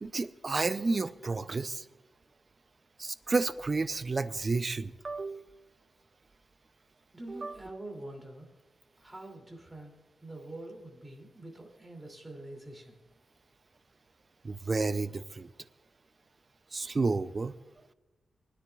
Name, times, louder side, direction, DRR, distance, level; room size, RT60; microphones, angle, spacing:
voice 1, 0.0-1.8 3.0-5.5 7.3-7.6 14.4-15.5 16.7-17.5, right 3 dB, 35° right, 13 dB, 0.5 m, -31 dB
voice 2, 7.1-8.5 9.0-9.9 10.2-12.9, right 1 dB, 15° right, 1 dB, 2.7 m, -45 dB
23.0 x 9.9 x 2.4 m, 1.1 s
wide cardioid pair, 120°, 0 cm